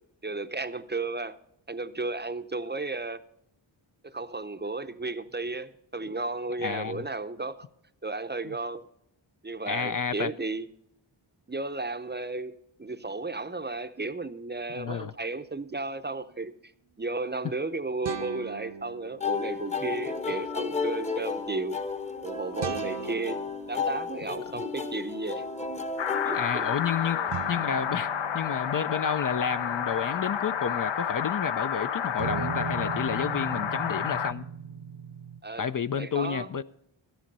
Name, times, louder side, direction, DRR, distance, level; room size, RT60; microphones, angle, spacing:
voice 1, 0.2-1.4 1.7-3.2 4.0-7.7 8.0-8.9 9.4-10.7 11.5-16.5 17.0-21.8 22.2-23.4 23.7-25.4 26.2-26.7 27.0-27.4 35.4-35.7 36.0-36.5, right 3 dB, 20° right, 0.6 m, -34 dB
voice 2, 6.6-7.0 9.7-10.3 14.7-15.1 26.3-27.2 27.5-34.5 35.6-36.6, left 7 dB, 45° left, 0.4 m, -30 dB
sound 1, 18.0-19.7 22.6-25.0 27.3-31.6 32.2-35.4, right 6 dB, 60° right, 0.7 m, -40 dB
sound 2, 19.2-27.1, left 5 dB, 15° left, 0.8 m, -33 dB
sound 3, 26.0-34.3, left 8 dB, 70° left, 0.8 m, -30 dB
12.5 x 10.5 x 5.3 m
wide cardioid pair, 110°, 47 cm